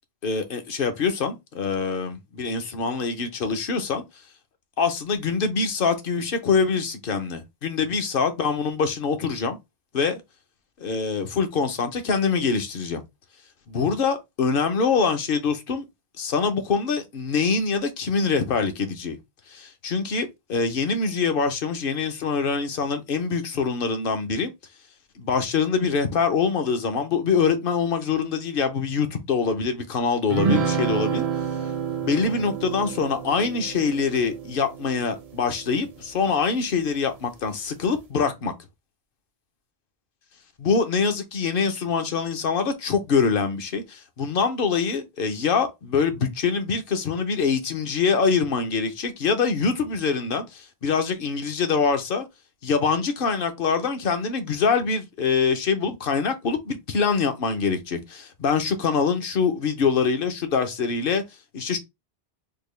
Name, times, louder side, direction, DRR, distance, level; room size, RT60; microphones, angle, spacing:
voice 1, 0.2-4.0 4.8-9.6 9.9-10.2 10.8-13.0 13.7-15.8 16.2-19.2 19.5-24.5 25.2-31.2 32.0-38.5 40.6-52.3 52.6-61.2 61.5-61.8, left 5 dB, 60° left, 0.9 m, -24 dB
sound 1, 30.3-36.0, right 6 dB, 45° right, 0.6 m, -29 dB
3.7 x 2.2 x 3.2 m
omnidirectional pair, 1.1 m